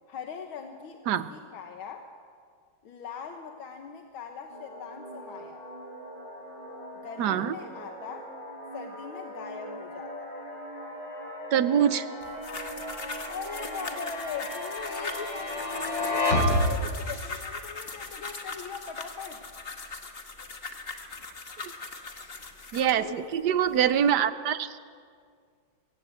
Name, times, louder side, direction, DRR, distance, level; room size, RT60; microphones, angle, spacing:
voice 1, 0.1-2.1 2.8-5.7 7.0-8.3 8.7-10.3 13.3-19.5 22.9-23.6, left 6 dB, 90° left, 4 dB, 2.0 m, -41 dB
sound 1, 4.5-17.1, left 1 dB, 65° left, 4.8 m, -33 dB
voice 2, 7.2-7.6 11.5-12.1 22.7-24.8, right 9 dB, 65° right, 13 dB, 1.2 m, -24 dB
sound 2, 12.2-23.0 23.6-24.1, left 3 dB, 30° left, 1.5 m, -40 dB
23.5 x 17.0 x 7.8 m, 2.1 s
omnidirectional pair, 2.2 m